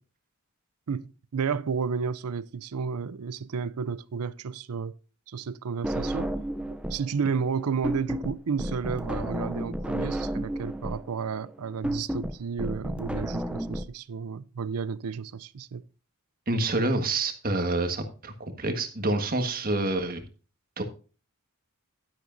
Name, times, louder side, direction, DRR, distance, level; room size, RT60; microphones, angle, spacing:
voice 1, 0.9-5.0 5.3-6.3 6.7-15.8, right 6 dB, 85° right, 0.5 m, -32 dB
sound 1, 5.8-7.1 7.4-13.8, right 1 dB, 5° right, 0.5 m, -32 dB
voice 2, 16.5-20.2 20.8-20.9, right 2 dB, 40° right, 1.5 m, -27 dB
11.5 x 10.5 x 2.6 m
head